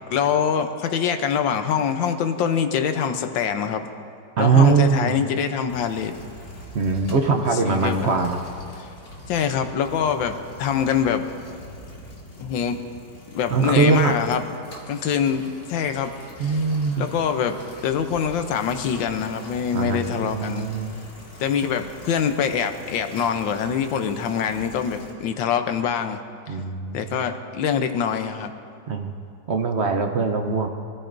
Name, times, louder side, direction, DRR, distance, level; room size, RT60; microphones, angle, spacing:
voice 1, 0.1-3.9 4.4-6.1 7.5-8.2 8.8-8.9 9.3-11.3 12.4-12.8 13.3-14.5 14.9-16.1 16.4-16.6 17.0-17.6 17.8-20.7 21.4-26.2 26.9-28.5, left 7 dB, 80° left, 8 dB, 1.5 m, -24 dB
voice 2, 4.4-5.2 6.7-8.4 13.5-14.1 16.4-17.1 19.7-20.9 26.5-27.0 28.9-29.1 29.5-30.7, right 5 dB, 60° right, 4 dB, 0.7 m, -21 dB
sound 1, 5.7-25.1, left 1 dB, 40° left, 2.2 m, -43 dB
24.5 x 14.0 x 2.6 m, 2.5 s
omnidirectional pair, 2.1 m